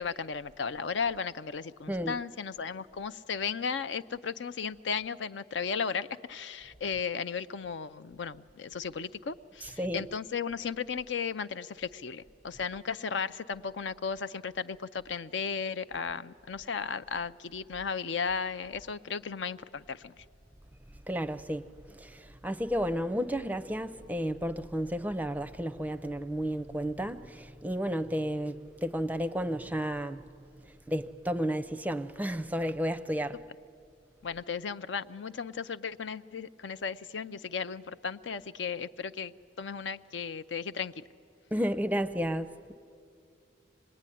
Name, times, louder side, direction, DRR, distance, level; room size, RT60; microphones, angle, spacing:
voice 1, 0.0-20.1 34.2-41.0, left 6 dB, 75° left, 0.5 m, -35 dB
voice 2, 1.9-2.2 9.6-10.1 21.1-30.3 30.9-33.4 41.5-42.8, equal, 10° right, 0.5 m, -32 dB
26.0 x 20.0 x 10.0 m
head